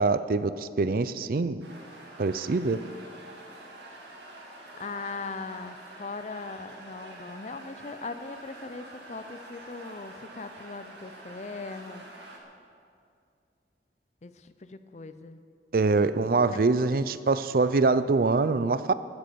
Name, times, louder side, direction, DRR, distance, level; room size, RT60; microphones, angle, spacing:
voice 1, 0.0-1.6 2.2-2.8 15.7-18.9, right 3 dB, 55° right, 14 dB, 0.5 m, -24 dB
sound 1, 1.6-12.4, right 2 dB, 85° right, 2.2 m, -47 dB
voice 2, 4.8-12.1 14.2-15.4 16.5-16.6, left 3 dB, 40° left, 11 dB, 0.5 m, -39 dB
16.5 x 7.9 x 6.9 m, 2.3 s
head